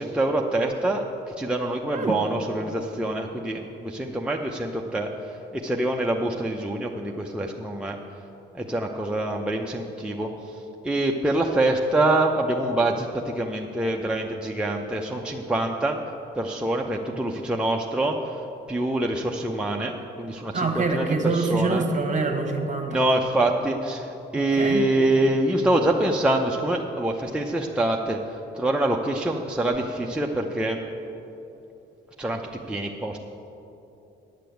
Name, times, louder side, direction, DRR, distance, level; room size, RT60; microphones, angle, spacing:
voice 1, 0.0-8.0 8.5-10.3 10.8-16.0 16.4-18.4 18.7-21.9 22.9-30.8 32.2-32.4 32.7-33.2, right 1 dB, 5° right, 0 dB, 0.7 m, -25 dB
voice 2, 20.5-23.0 24.3-24.9, right 3 dB, 40° right, 4 dB, 1.5 m, -25 dB
10.5 x 6.7 x 7.9 m, 2.9 s
cardioid pair, 90°, 20 cm